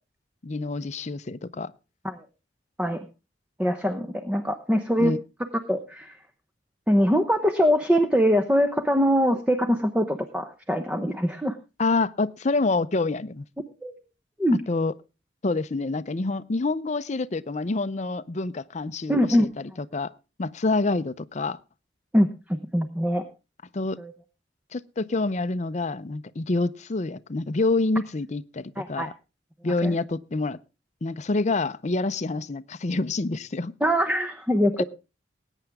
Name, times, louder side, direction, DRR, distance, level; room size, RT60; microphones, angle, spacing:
voice 1, 0.4-1.7 5.0-5.2 11.8-13.5 14.7-14.9 15.4-20.1 20.4-21.6 23.7-24.0 24.7-29.1 29.6-30.6 31.0-33.7 34.8-34.9, left 3 dB, 40° left, 0.6 m, -27 dB
voice 2, 3.6-5.1 5.7-6.2 6.9-11.5 13.8-13.9 14.4-14.6 19.1-19.5 22.1-23.2 24.0-24.1 28.8-29.1 29.8-29.9 33.8-34.8, equal, 5° right, 0.8 m, -23 dB
20.0 x 9.1 x 3.5 m
head